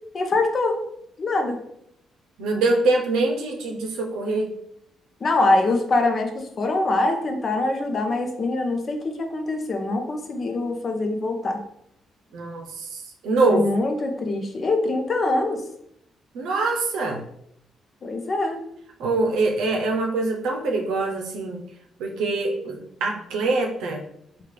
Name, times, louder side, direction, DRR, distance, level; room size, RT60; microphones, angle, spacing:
voice 1, 0.1-0.8 1.2-1.6 5.2-11.6 13.5-15.6 18.0-18.6, left 2 dB, 40° left, 4 dB, 0.6 m, -24 dB
voice 2, 2.4-4.5 12.3-13.7 16.3-17.3 19.0-21.6 22.0-24.0, right 3 dB, 90° right, 2 dB, 0.6 m, -24 dB
3.6 x 2.3 x 3.2 m, 0.75 s
cardioid pair, 90°, 0 cm